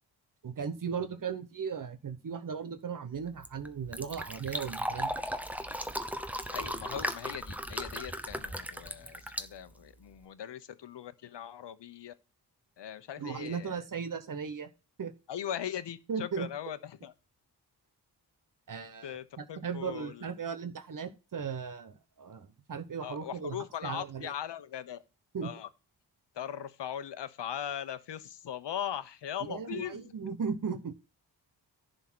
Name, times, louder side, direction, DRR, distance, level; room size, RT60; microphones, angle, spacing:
voice 1, 0.4-5.1 13.2-14.7 15.0-15.1 16.1-16.5 18.7-23.6 23.8-24.3 25.3-25.5 29.5-31.0, right 6 dB, 50° right, 0.9 m, -37 dB
Fill (with liquid), 3.1-10.2, equal, 5° right, 0.9 m, -37 dB
voice 2, 6.5-12.1 12.8-13.8 15.3-17.1 19.0-20.3 23.0-25.0 25.4-25.7 26.3-30.3, left 9 dB, 85° left, 1.1 m, -40 dB
11.0 x 4.0 x 6.1 m
wide cardioid pair, 135°, 41 cm